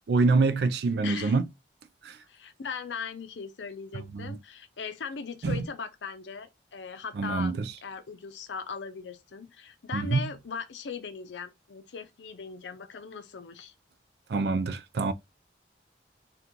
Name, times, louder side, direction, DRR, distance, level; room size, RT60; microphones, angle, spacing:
voice 1, 0.1-1.4 4.1-4.3 5.4-5.6 7.2-7.6 9.9-10.2 14.3-15.1, right 3 dB, 70° right, 0.4 m, -25 dB
voice 2, 1.0-1.4 2.3-7.5 7.8-13.7, left 5 dB, 85° left, 0.6 m, -39 dB
2.9 x 2.3 x 3.7 m
head